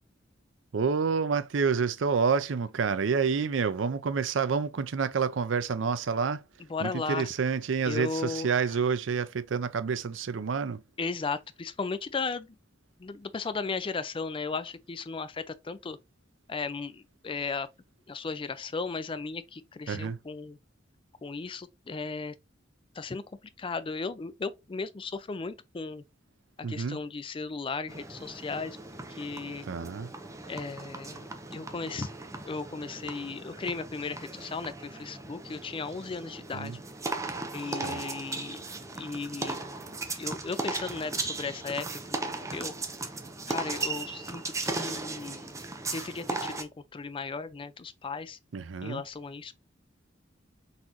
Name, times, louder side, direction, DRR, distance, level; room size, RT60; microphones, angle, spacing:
voice 1, 0.7-6.4 6.8-10.8 19.9-20.2 26.6-27.0 29.7-30.1 36.5-36.8 37.8-38.0 48.5-49.0, right 5 dB, 75° right, 0.5 m, -28 dB
voice 2, 6.7-7.3 7.9-8.5 11.0-12.6 13.0-16.0 16.5-17.7 18.1-20.6 21.2-22.3 22.9-23.2 23.6-26.0 26.7-28.8 29.1-29.7 30.5-32.1 32.4-36.8 37.5-38.6 39.0-42.7 43.5-45.6 45.9-48.4 48.8-49.5, left 4 dB, 30° left, 0.4 m, -36 dB
sound 1, 27.9-46.6, right 3 dB, 15° right, 0.6 m, -37 dB
4.1 x 3.8 x 2.9 m
head